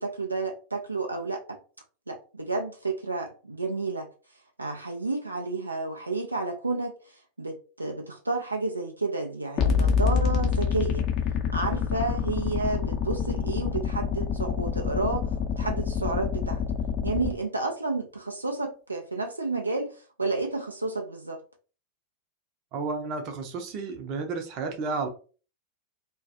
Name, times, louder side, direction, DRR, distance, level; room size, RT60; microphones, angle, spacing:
voice 1, 0.0-1.6 2.1-4.1 4.6-11.1 11.5-15.3 15.6-16.6 17.0-21.4, right 3 dB, 80° right, 0.3 m, -31 dB
sound 1, 9.6-17.3, left 6 dB, 35° left, 0.6 m, -27 dB
voice 2, 22.7-25.1, right 4 dB, 40° right, 0.6 m, -32 dB
2.2 x 2.2 x 2.7 m
figure-of-eight pair, 90°, 0 cm